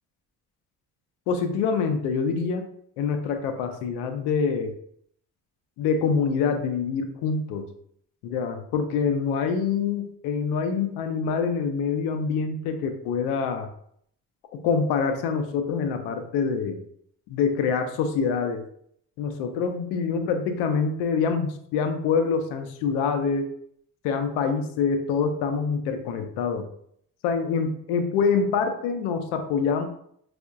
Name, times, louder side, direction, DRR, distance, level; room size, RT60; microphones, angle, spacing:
voice 1, 1.3-2.7 3.0-4.7 5.8-7.7 8.2-13.7 14.5-16.8 17.3-18.6 19.2-23.5 24.0-26.7 27.2-29.9, left 5 dB, 85° left, 7 dB, 0.5 m, -25 dB
4.3 x 2.1 x 2.4 m, 0.68 s
hypercardioid pair, 55°, 40 cm